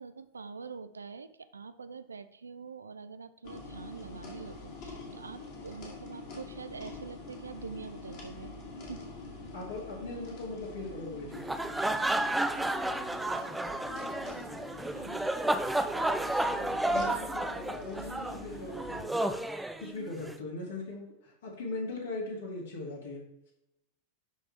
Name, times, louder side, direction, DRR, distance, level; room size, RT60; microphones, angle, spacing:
voice 1, 0.0-8.5 8.8-9.0 14.9-15.3, right 5 dB, 75° right, 12 dB, 0.4 m, -45 dB
sound 1, 3.4-19.1, left 3 dB, 45° left, 2.0 m, -45 dB
voice 2, 9.5-11.5 15.9-19.4 19.8-23.2, left 2 dB, 65° left, -2 dB, 2.2 m, -40 dB
sound 2, 11.3-20.3, right 1 dB, 5° right, 0.4 m, -32 dB
11.5 x 3.9 x 3.3 m, 0.85 s
figure-of-eight pair, 90°, 0 cm